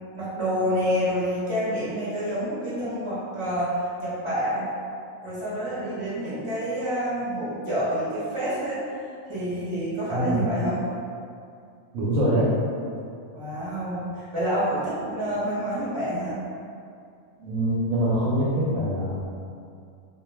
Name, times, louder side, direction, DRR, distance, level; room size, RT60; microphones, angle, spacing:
voice 1, 0.1-4.7 5.2-8.8 9.3-10.8 13.3-16.4, equal, 30° right, -11 dB, 0.6 m, -28 dB
voice 2, 10.1-10.4 11.9-12.5 17.4-19.2, right 1 dB, 70° right, -9 dB, 0.9 m, -24 dB
2.3 x 2.2 x 3.2 m, 2.4 s
omnidirectional pair, 1.6 m